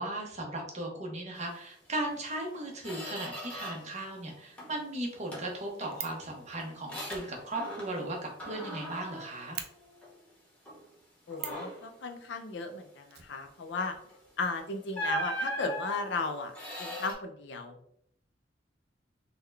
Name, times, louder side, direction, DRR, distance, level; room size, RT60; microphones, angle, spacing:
voice 1, 0.0-9.6, right 1 dB, 40° right, 0 dB, 0.9 m, -37 dB
Squeak, 2.0-2.2 2.5-4.0 4.3-4.9 5.3-8.1 8.4-10.2 10.7-10.9 11.3-11.9 14.0-14.2 14.9-17.1, equal, 10° left, 1.1 m, -39 dB
Fire, 5.9-6.2 7.0-8.8 9.1-9.2 9.5-9.7 11.3-11.7 13.1-14.0 14.2-14.3 14.6-14.7, right 9 dB, 55° right, 0.4 m, -42 dB
voice 2, 11.3-14.0 14.4-16.5 16.8-17.8, left 3 dB, 65° left, 6 dB, 0.5 m, -35 dB
3.7 x 2.2 x 3.2 m, 0.68 s
head